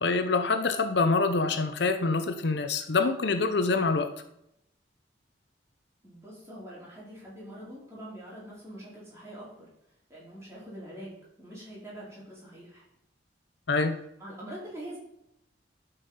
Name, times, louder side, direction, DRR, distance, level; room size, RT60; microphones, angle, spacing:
voice 1, 0.0-4.1 13.7-14.0, left 3 dB, 65° left, 8 dB, 0.7 m, -25 dB
voice 2, 6.0-9.7 10.1-12.8 14.2-15.0, right 1 dB, 15° right, -7 dB, 4.3 m, -44 dB
12.0 x 5.6 x 5.7 m, 0.80 s
head